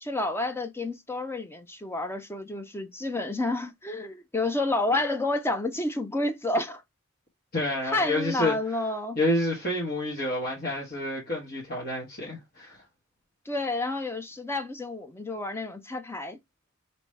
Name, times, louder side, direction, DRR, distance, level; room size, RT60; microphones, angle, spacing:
voice 1, 0.0-6.8 7.8-9.2 13.5-16.4, left 2 dB, 10° left, 0.5 m, -30 dB
voice 2, 7.5-8.5 9.2-12.8, left 1 dB, 45° left, 1.4 m, -28 dB
5.0 x 3.0 x 3.1 m
head